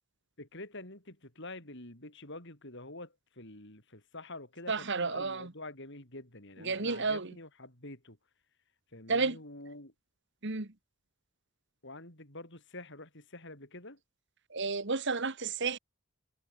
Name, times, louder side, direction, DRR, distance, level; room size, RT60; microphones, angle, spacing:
voice 1, 0.4-8.2 8.9-9.9 11.8-14.0, left 2 dB, 55° left, 7.8 m, -47 dB
voice 2, 4.7-5.5 6.6-7.3 9.1-9.4 10.4-10.7 14.5-15.8, right 4 dB, 55° right, 1.7 m, -31 dB
head